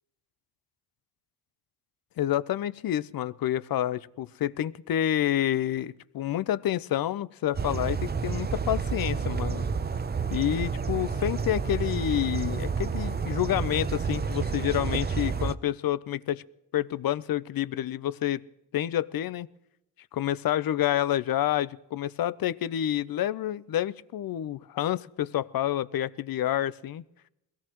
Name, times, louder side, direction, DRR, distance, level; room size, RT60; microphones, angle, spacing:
voice 1, 2.2-9.6 10.3-16.4 16.7-18.4 18.7-19.5 20.1-27.0, left 12 dB, 60° left, 17 dB, 0.7 m, -28 dB
sound 1, 7.5-15.5, right 5 dB, 25° right, 0.7 m, -30 dB
21.5 x 16.5 x 3.0 m, 0.85 s
supercardioid pair, 55°, 41 cm